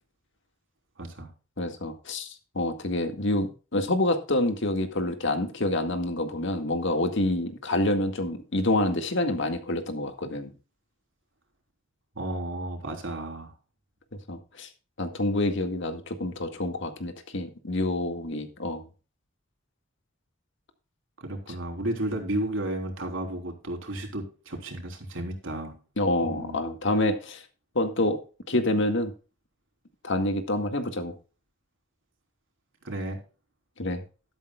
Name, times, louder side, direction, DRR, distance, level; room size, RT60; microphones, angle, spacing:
voice 1, 1.0-1.3 12.2-13.5 21.2-25.8 26.2-26.6 32.8-33.2, right 1 dB, 70° right, 3 dB, 3.8 m, -33 dB
voice 2, 1.6-10.5 14.3-14.7 15.0-18.8 21.5-21.6 26.0-27.4 27.8-28.2 28.5-29.1 30.0-31.1 33.8-34.0, left 1 dB, 65° left, 6 dB, 2.0 m, -27 dB
12.5 x 12.5 x 2.4 m, 0.35 s
head